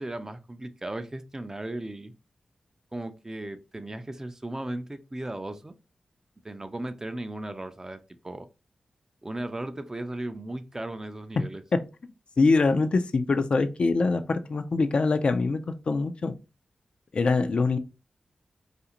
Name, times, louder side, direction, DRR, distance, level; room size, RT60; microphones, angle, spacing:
voice 1, 0.0-2.1 2.9-5.7 6.4-8.0 8.2-8.5 9.2-11.6, right 1 dB, 25° right, 0.4 m, -36 dB
voice 2, 12.4-16.3 17.1-17.8, left 3 dB, 60° left, 0.3 m, -24 dB
2.5 x 2.4 x 2.8 m
cardioid pair, 45°, 2 cm